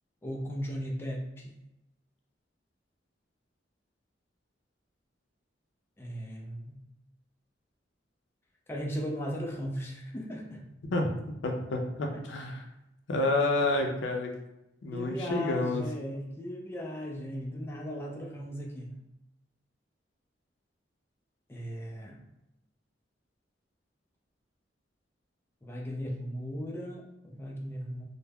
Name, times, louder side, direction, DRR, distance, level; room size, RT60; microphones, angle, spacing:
voice 1, 0.2-1.5 6.0-6.8 8.7-10.6 14.9-19.0 21.5-22.2 25.6-28.0, equal, 15° left, -2 dB, 0.3 m, -37 dB
voice 2, 11.4-12.6 13.1-14.3 14.8-15.8, left 2 dB, 75° left, 2 dB, 0.5 m, -29 dB
2.2 x 2.0 x 3.4 m, 0.89 s
head